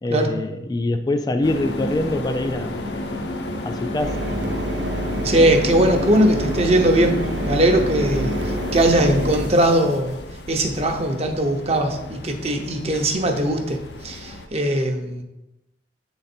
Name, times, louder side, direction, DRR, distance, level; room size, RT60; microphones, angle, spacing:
voice 1, 0.0-2.7 3.6-4.3, left 2 dB, 20° left, 8 dB, 0.3 m, -24 dB
sound 1, 1.4-14.5, left 1 dB, 70° left, 0.7 m, -31 dB
Mechanisms, 4.0-9.5, right 1 dB, 90° right, 0.6 m, -28 dB
voice 2, 5.2-7.1 7.4-10.2 10.5-13.8 14.0-15.2, right 1 dB, 35° right, 4 dB, 0.7 m, -20 dB
7.4 x 3.9 x 4.3 m, 0.96 s
head